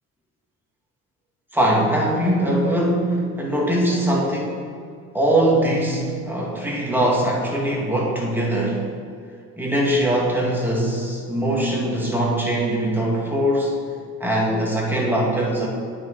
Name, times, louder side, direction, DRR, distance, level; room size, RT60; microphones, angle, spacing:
voice 1, 1.5-4.6 5.1-8.8 9.6-13.8 14.2-15.7, right 1 dB, 5° right, -4 dB, 2.0 m, -21 dB
8.8 x 5.1 x 4.1 m, 2.2 s
cardioid pair, 90°, 30 cm